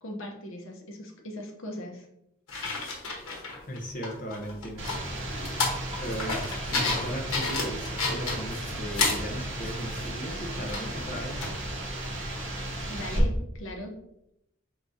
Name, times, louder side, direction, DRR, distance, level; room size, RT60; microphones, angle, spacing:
voice 1, 0.0-2.1 12.9-14.0, left 1 dB, 70° left, 2 dB, 0.9 m, -39 dB
sound 1, 2.5-3.8 4.0-9.3 9.6-10.1 10.7-11.6 12.0-12.1, left 3 dB, 90° left, 1.2 m, -31 dB
voice 2, 3.7-4.8 6.0-6.4 6.7-11.5, equal, 40° left, 0 dB, 0.8 m, -36 dB
sound 2, 4.8-13.2, right 1 dB, 60° right, 1.0 m, -35 dB
4.9 x 3.6 x 2.7 m, 0.80 s
head